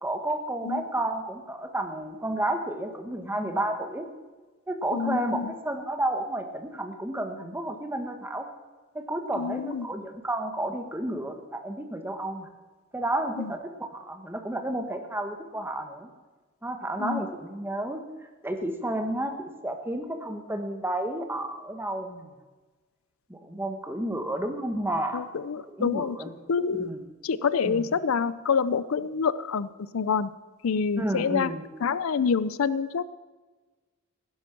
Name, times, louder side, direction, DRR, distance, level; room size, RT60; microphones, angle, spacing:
voice 1, 0.0-4.1 4.7-8.5 8.9-12.5 12.9-16.1 16.6-18.0 18.4-22.3 23.3-25.2 25.7-26.3 26.7-27.1 27.6-27.8 30.9-31.6, right 1 dB, 10° right, 5 dB, 1.3 m, -31 dB
voice 2, 4.9-5.5 9.4-9.9 13.4-13.5 17.0-17.2 25.1-26.2 26.5-26.9 27.2-29.7 29.9-30.3 30.6-31.5 31.8-33.0, left 6 dB, 75° left, 16 dB, 0.5 m, -27 dB
16.5 x 10.5 x 6.0 m, 1.3 s
head